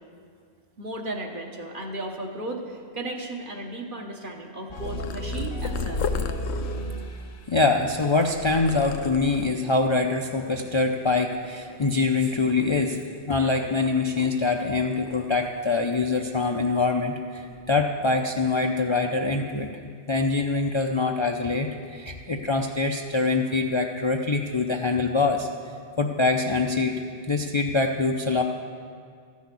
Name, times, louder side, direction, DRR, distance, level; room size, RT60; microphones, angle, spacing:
voice 1, 0.8-6.1, right 2 dB, 55° right, 1 dB, 1.4 m, -35 dB
Purr, 4.7-9.6 10.2-10.6 10.9-12.1 12.5-14.6 14.9-16.2 16.4-16.7 17.4-17.7, left 6 dB, 85° left, 0.9 m, -36 dB
sound 1, 4.7-7.6, right 1 dB, 55° left, 1.0 m, -33 dB
voice 2, 7.5-13.0 13.3-19.7 20.1-25.5 26.0-27.0 27.3-28.4, left 3 dB, 40° left, 2 dB, 0.4 m, -24 dB
14.0 x 6.3 x 8.3 m, 2.1 s
omnidirectional pair, 1.1 m